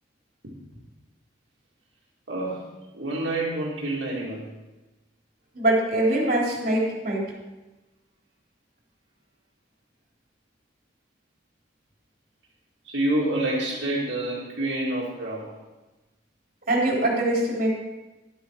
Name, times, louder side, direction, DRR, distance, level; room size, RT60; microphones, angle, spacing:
voice 1, 2.3-2.6 2.9-4.4 12.8-15.6, right 1 dB, 90° right, -5 dB, 2.3 m, -28 dB
voice 2, 5.5-7.2 16.7-17.7, right 1 dB, 50° right, -3 dB, 3.7 m, -23 dB
11.5 x 8.0 x 4.7 m, 1.1 s
head